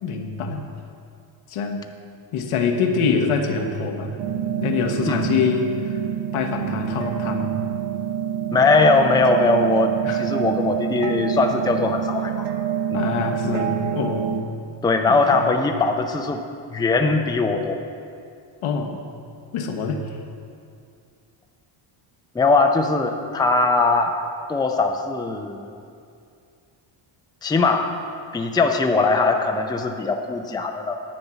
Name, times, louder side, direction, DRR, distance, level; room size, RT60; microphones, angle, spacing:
voice 1, 0.0-0.6 1.5-1.9 2.3-4.2 4.6-6.0 6.3-7.5 10.0-10.2 12.9-14.5 15.1-15.5 18.6-19.0 19.5-20.0, left 5 dB, 80° left, 4 dB, 1.2 m, -25 dB
sound 1, 4.2-14.4, right 10 dB, 70° right, 0.9 m, -26 dB
voice 2, 8.5-12.5 12.9-13.0 14.8-16.4 16.7-17.8 22.3-24.2 24.5-25.6 27.4-28.0 28.3-31.0, left 3 dB, 10° left, 4 dB, 0.5 m, -20 dB
10.0 x 5.4 x 8.2 m, 2.4 s
cardioid pair, 120°, 50 cm